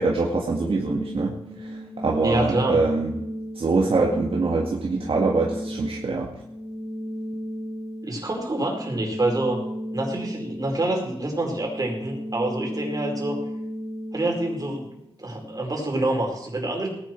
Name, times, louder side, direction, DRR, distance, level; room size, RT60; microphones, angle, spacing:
voice 1, 0.0-1.3 1.6-3.1 3.6-6.3, right 3 dB, 65° right, -2 dB, 1.9 m, -24 dB
sound 1, 0.6-15.6, equal, 80° left, 3.4 m, -35 dB
voice 2, 2.2-2.8 8.0-9.6 9.9-13.4 14.1-14.8 15.2-16.9, right 2 dB, 40° right, 0 dB, 4.6 m, -26 dB
18.5 x 10.5 x 4.6 m, 0.83 s
wide cardioid pair, 80°, 10 cm